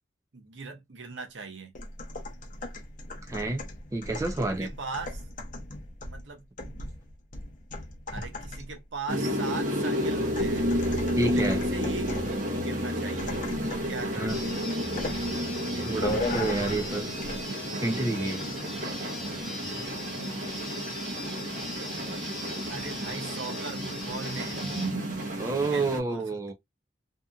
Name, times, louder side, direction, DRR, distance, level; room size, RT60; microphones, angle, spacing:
voice 1, 0.3-1.7 4.6-5.2 6.1-6.5 8.1-10.8 11.3-14.2 22.7-24.6 25.4-26.3, right 4 dB, 80° right, 0.8 m, -40 dB
sound 1, 1.7-8.8 10.4-12.4 13.2-13.9 14.2-14.5 15.0-15.2 16.0-16.9 17.2-17.4, left 1 dB, 45° left, 0.7 m, -37 dB
voice 2, 3.2-3.6 3.9-4.7 8.2-8.3 11.2-11.6 13.6-13.7 14.2-14.4 15.2-17.1 17.8-18.4 25.4-26.5, right 2 dB, 15° right, 0.4 m, -29 dB
sound 2, 9.1-26.0, equal, 45° right, 0.9 m, -31 dB
sound 3, 14.3-24.9, left 2 dB, ahead, 1.0 m, -40 dB
2.7 x 2.6 x 2.3 m
head